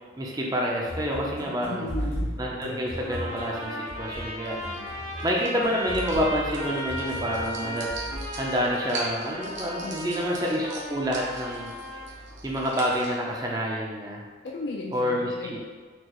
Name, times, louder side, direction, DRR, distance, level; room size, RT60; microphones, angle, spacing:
voice 1, 0.2-1.9 2.4-4.7 5.2-7.9 8.3-11.8 12.4-14.2 14.9-15.3, equal, 20° right, -1 dB, 0.4 m, -28 dB
sound 1, 0.8-8.5, equal, 90° left, 0.9 m, -36 dB
voice 2, 1.7-2.4 9.8-10.4 14.4-15.6, left 2 dB, 60° left, -2 dB, 0.4 m, -36 dB
Trumpet, 3.0-12.1, equal, 90° right, 1.4 m, -36 dB
sound 2, 4.4-13.1, right 2 dB, 70° right, 0.7 m, -42 dB
4.5 x 2.4 x 2.9 m, 1.4 s
head